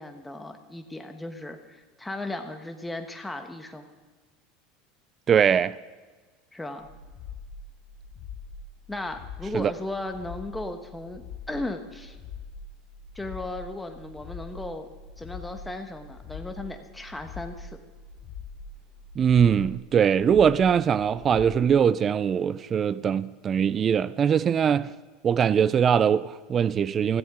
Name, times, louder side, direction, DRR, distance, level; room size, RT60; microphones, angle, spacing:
voice 1, 0.0-3.9 6.5-6.9 8.9-12.2 13.1-14.9 15.2-17.8, left 2 dB, 5° left, 1.2 m, -36 dB
voice 2, 5.3-5.8 9.5-9.7 19.2-24.9 25.2-27.2, right 7 dB, 30° right, 0.4 m, -22 dB
sound 1, 6.8-21.7, left 5 dB, 45° left, 1.3 m, -43 dB
16.5 x 14.0 x 3.7 m
supercardioid pair, 135°, 0 cm